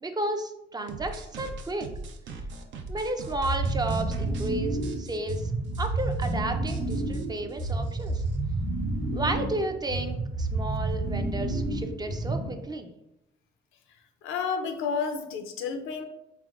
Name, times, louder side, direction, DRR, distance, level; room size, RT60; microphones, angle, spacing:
voice 1, 0.0-1.9 2.9-5.5 5.8-8.2 9.1-12.9, right 2 dB, 20° right, 6 dB, 0.4 m, -32 dB
sound 1, 0.9-4.5 4.8-5.4 5.7-5.9 6.1-6.3 6.7-8.4, right 3 dB, 70° right, 0.6 m, -41 dB
sound 2, 3.4-12.6, right 2 dB, 45° right, 1.0 m, -30 dB
voice 2, 14.2-16.0, left 5 dB, 85° left, 6 dB, 0.6 m, -30 dB
4.0 x 3.4 x 2.5 m, 0.87 s
cardioid pair, 90°, 20 cm